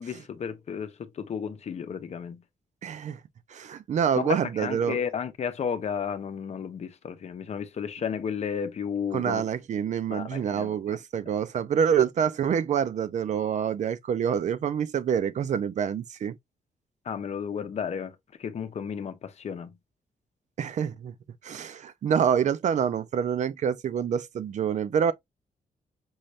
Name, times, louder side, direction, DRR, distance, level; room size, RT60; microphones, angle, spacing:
voice 1, 0.0-2.4 4.2-9.4 10.1-11.0 17.0-18.1 18.4-19.7, left 7 dB, 50° left, 0.8 m, -33 dB
voice 2, 2.8-3.2 3.5-5.0 9.1-16.4 20.6-21.1 21.4-25.1, right 8 dB, 55° right, 0.6 m, -26 dB
5.6 x 2.6 x 3.1 m
cardioid pair, 130°, 15 cm